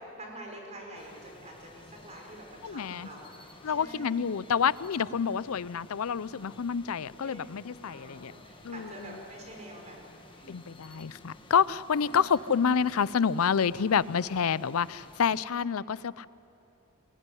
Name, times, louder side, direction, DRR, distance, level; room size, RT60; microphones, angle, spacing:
voice 1, 0.2-4.3 7.2-7.5 7.8-10.5 12.0-12.2, right 1 dB, 30° right, 0 dB, 5.1 m, -46 dB
sound 1, 0.9-15.4, left 2 dB, 25° left, 1.6 m, -53 dB
voice 2, 2.6-3.1 3.6-8.3 8.6-9.2 10.5-16.3, left 7 dB, 75° left, 19 dB, 0.5 m, -28 dB
21.5 x 20.5 x 9.8 m, 2.8 s
head